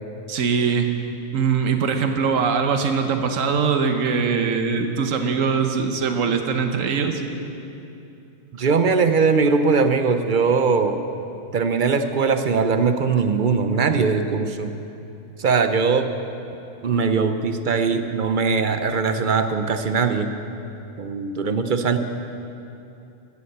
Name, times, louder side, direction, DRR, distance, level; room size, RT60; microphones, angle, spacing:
voice 1, 0.3-0.9 1.3-7.2, right 5 dB, 90° right, 6 dB, 1.3 m, -22 dB
voice 2, 8.5-11.0 11.5-14.7 15.4-16.1 16.8-20.3 21.0-22.0, right 5 dB, 50° right, 8 dB, 0.6 m, -20 dB
15.5 x 7.1 x 7.9 m, 2.8 s
omnidirectional pair, 1.3 m